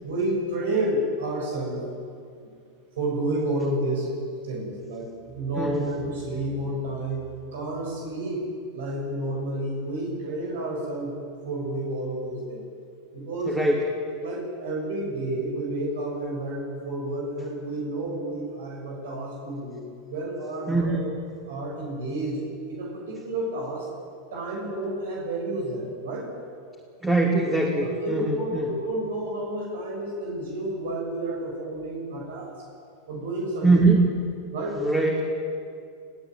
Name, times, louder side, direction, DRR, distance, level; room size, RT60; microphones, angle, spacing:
voice 1, 0.0-1.8 3.0-4.1 4.4-8.5 8.7-11.1 11.4-12.6 13.1-13.6 14.2-19.8 20.1-23.9 24.3-26.3 27.8-32.5 33.1-33.7 34.5-34.8, right 1 dB, 80° right, -1 dB, 6.9 m, -30 dB
voice 2, 13.5-13.8 20.7-21.0 27.0-28.7 33.6-34.0 34.8-35.2, right 3 dB, 10° right, -2 dB, 3.1 m, -22 dB
21.5 x 16.5 x 9.3 m, 2.4 s
hypercardioid pair, 120°, 0 cm